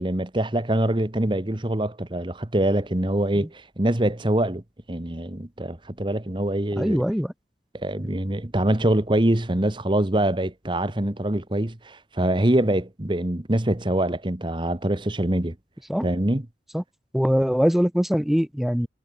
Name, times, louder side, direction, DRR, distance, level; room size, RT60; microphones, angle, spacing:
voice 1, 0.0-4.6 4.9-7.0 7.7-15.5 16.0-16.4, right 1 dB, 25° right, 1.2 m, -24 dB
voice 2, 6.8-7.3 15.9-16.0 16.7-16.8 17.1-18.9, equal, ahead, 0.4 m, -22 dB
head